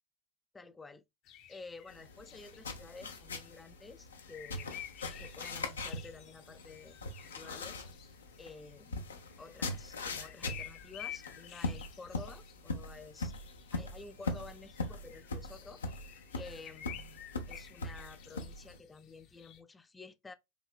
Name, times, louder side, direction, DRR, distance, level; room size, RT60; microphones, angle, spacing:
voice 1, 0.5-1.0 1.5-4.8 5.2-6.9 7.3-7.8 8.4-9.0 9.4-13.3 13.7-15.8 16.4-20.3, left 3 dB, 15° left, 0.5 m, -51 dB
sound 1, 1.2-19.6, left 11 dB, 50° left, 0.7 m, -52 dB
sound 2, 1.9-18.8, left 2 dB, 80° left, 0.7 m, -42 dB
4.9 x 2.9 x 2.3 m
hypercardioid pair, 85°, 0 cm